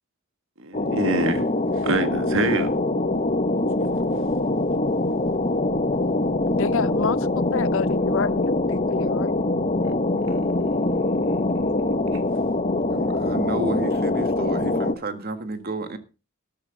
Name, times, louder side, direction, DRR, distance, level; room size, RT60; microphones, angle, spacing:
voice 1, 0.6-1.4 1.8-2.7 9.8-9.9 10.3-11.7 12.1-12.2, right 2 dB, 65° right, 1.7 m, -27 dB
sound 1, 0.7-14.9, left 2 dB, 35° left, 1.1 m, -23 dB
voice 2, 6.6-9.5, left 5 dB, 65° left, 0.6 m, -28 dB
voice 3, 12.9-16.0, right 2 dB, 45° right, 1.8 m, -31 dB
13.0 x 12.5 x 4.0 m
head